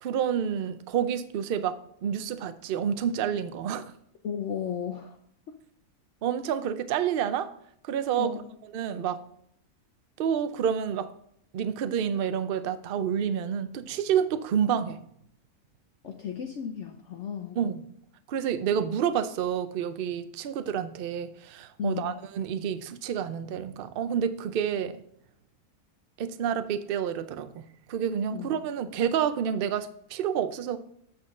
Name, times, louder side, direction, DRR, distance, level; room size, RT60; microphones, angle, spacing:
voice 1, 0.0-3.9 6.2-7.5 7.8-8.3 8.7-9.2 10.2-11.1 11.5-15.0 17.6-17.8 18.3-25.0 26.2-30.8, right 8 dB, 65° right, 11 dB, 0.5 m, -29 dB
voice 2, 4.2-5.2 8.2-8.5 16.0-17.6 21.8-22.2 28.3-28.6, left 8 dB, 60° left, 4 dB, 0.9 m, -34 dB
8.1 x 6.0 x 3.6 m, 0.69 s
omnidirectional pair, 1.6 m